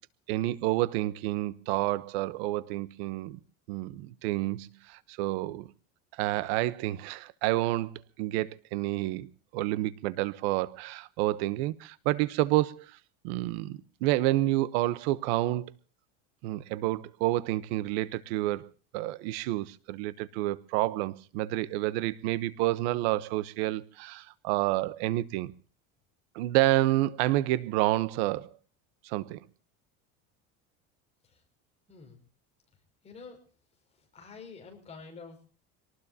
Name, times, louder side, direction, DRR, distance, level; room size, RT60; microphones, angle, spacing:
voice 1, 0.3-3.4 3.7-5.7 6.1-9.3 9.5-13.0 13.2-15.7 16.4-18.7 18.9-25.5 26.3-28.5 29.0-29.4, right 16 dB, 80° right, 1.1 m, -29 dB
voice 2, 33.0-33.4 34.1-35.4, left 4 dB, 20° left, 5.8 m, -47 dB
26.0 x 19.5 x 2.8 m
cardioid pair, 155°, 31 cm